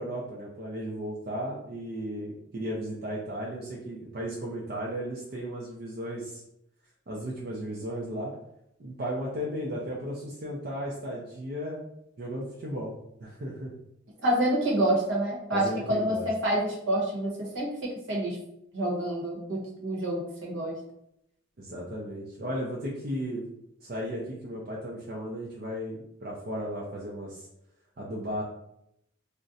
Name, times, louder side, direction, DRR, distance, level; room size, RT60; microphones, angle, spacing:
voice 1, 0.0-6.4 7.1-8.3 8.8-11.8 12.2-12.9 13.2-13.7 15.5-16.2 21.6-23.4 23.8-27.5 28.0-28.4, equal, 50° right, -4 dB, 0.5 m, -35 dB
voice 2, 14.2-17.7 18.1-18.4 18.7-20.7, right 1 dB, 70° right, -3 dB, 0.9 m, -27 dB
2.4 x 2.1 x 3.9 m, 0.78 s
head